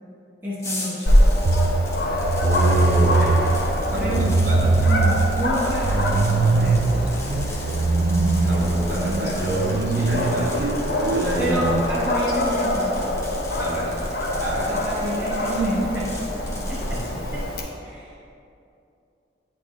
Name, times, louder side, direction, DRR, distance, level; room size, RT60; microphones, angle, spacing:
voice 1, 0.4-1.1 4.0-7.4 11.4-13.1 14.7-17.0 17.3-17.4 17.8-18.2, right 1 dB, 10° right, -9 dB, 0.8 m, -29 dB
sound 1, 0.6-17.1, left 2 dB, 15° left, 1.1 m, -40 dB
Dog, 1.1-17.6, left 1 dB, 55° left, 0.8 m, -25 dB
sound 2, 1.5-11.8, right 3 dB, 75° right, 0.4 m, -22 dB
voice 2, 2.4-3.3 3.9-4.7 8.4-11.6 13.6-14.0 14.4-14.8, right 1 dB, 50° right, -6 dB, 1.4 m, -28 dB
9.8 x 4.2 x 3.0 m, 2.6 s
head